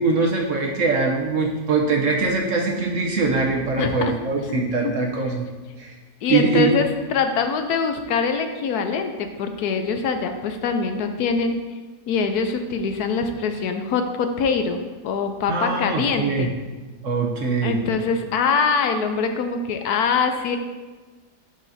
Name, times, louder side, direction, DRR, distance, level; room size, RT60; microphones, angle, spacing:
voice 1, 0.0-5.5 5.8-5.9 6.3-6.7 15.5-16.5 17.0-17.8, right 4 dB, 60° right, 1 dB, 1.0 m, -22 dB
voice 2, 3.8-4.1 4.5-4.6 4.8-4.9 5.3-5.4 6.2-11.6 12.1-16.5 17.6-20.6, left 5 dB, 75° left, 6 dB, 1.1 m, -23 dB
11.0 x 4.9 x 2.7 m, 1.3 s
omnidirectional pair, 1.8 m